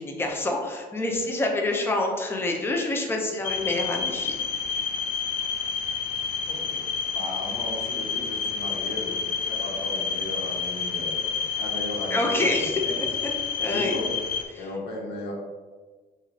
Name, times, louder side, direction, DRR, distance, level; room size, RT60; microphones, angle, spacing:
voice 1, 0.0-4.3 12.1-13.0 13.6-14.0 14.5-14.7, left 2 dB, 15° left, 1 dB, 0.6 m, -27 dB
sound 1, 3.4-14.5, left 6 dB, 60° left, 0.5 m, -29 dB
voice 2, 6.5-6.8 7.1-9.2 9.5-11.3 11.6-12.9 13.7-14.1 14.6-15.3, left 1 dB, 90° left, -3 dB, 1.2 m, -35 dB
6.0 x 2.6 x 2.7 m, 1.4 s
cardioid pair, 110°, 17 cm